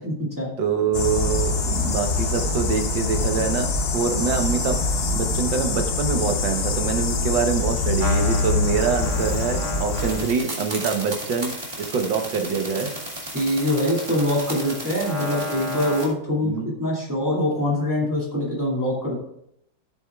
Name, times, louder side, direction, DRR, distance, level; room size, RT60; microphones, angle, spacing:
voice 1, 0.0-0.5 13.3-19.2, left 1 dB, 10° right, -5 dB, 2.1 m, -24 dB
voice 2, 0.6-3.7 3.9-11.5 11.8-13.0 16.4-16.7, right 6 dB, 85° right, 5 dB, 1.8 m, -25 dB
sound 1, 0.9-10.3, left 3 dB, 45° left, 0.8 m, -24 dB
sound 2, 8.0-16.1, right 1 dB, 25° right, 1.8 m, -33 dB
14.5 x 7.7 x 2.4 m, 0.75 s
omnidirectional pair, 2.0 m